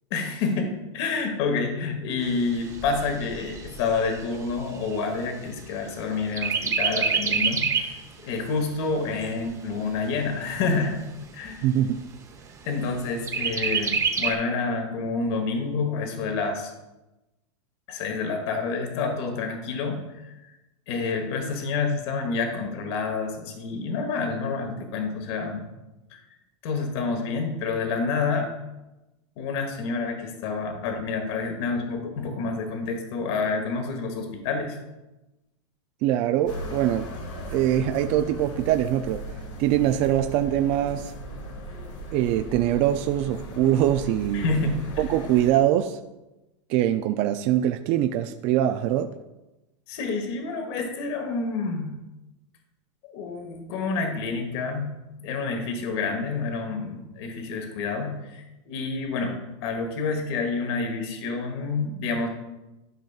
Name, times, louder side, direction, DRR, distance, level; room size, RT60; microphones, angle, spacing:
voice 1, 0.1-11.0 11.3-11.7 12.6-16.7 17.9-20.3 20.9-25.7 26.1-26.2 26.6-28.5 29.4-34.8 44.3-44.9 49.9-51.9 53.0-54.9 55.2-59.4 59.6-62.3, left 4 dB, 60° left, 4 dB, 1.3 m, -28 dB
Chirp tweet, 2.2-6.0 6.4-8.0 8.5-8.6 8.9-9.9 10.5-10.6 10.9-11.0 11.5-12.0 13.3-14.3, right 5 dB, 20° right, 0.8 m, -27 dB
voice 2, 11.6-12.0 36.0-37.1 37.5-39.2 39.6-41.1 42.1-44.5 45.0-46.0 46.7-49.1, right 12 dB, 45° right, 7 dB, 0.4 m, -23 dB
sound 1, 36.5-45.5, equal, 80° left, 2.2 m, -37 dB
12.0 x 5.2 x 2.4 m, 1.0 s
supercardioid pair, 125°, 16 cm